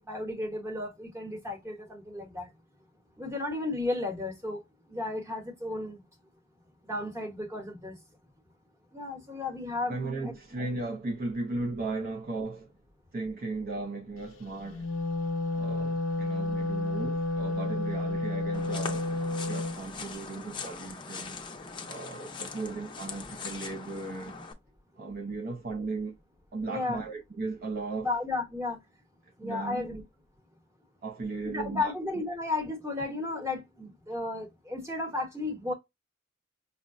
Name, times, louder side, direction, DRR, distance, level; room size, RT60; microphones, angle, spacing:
voice 1, 0.1-2.5 3.2-4.6 4.9-6.0 6.8-8.0 8.9-10.0 10.2-10.3 26.7-27.0 28.0-28.8 29.4-30.0 31.4-35.7, left 2 dB, 15° right, 1.0 m, -33 dB
voice 2, 9.9-12.7 13.1-14.9 15.5-19.1 19.4-21.4 21.8-24.4 25.0-26.2 26.5-28.1 29.4-29.8 31.0-31.9, right 3 dB, 45° right, 0.5 m, -36 dB
Wind instrument woodwind instrument, 14.6-19.8, left 2 dB, 75° left, 0.5 m, -31 dB
sound 1, 18.5-24.5, left 5 dB, 25° left, 0.5 m, -41 dB
5.4 x 2.1 x 2.4 m
head